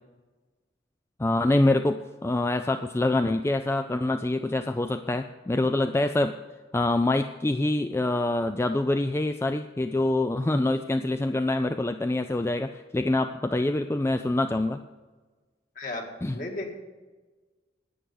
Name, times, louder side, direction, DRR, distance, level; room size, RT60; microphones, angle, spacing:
voice 1, 1.2-6.4 6.7-14.8 16.2-16.3, left 2 dB, 15° left, 8 dB, 0.3 m, -25 dB
voice 2, 15.8-16.8, left 2 dB, 45° left, 2 dB, 2.0 m, -35 dB
10.0 x 9.2 x 7.1 m, 1.3 s
head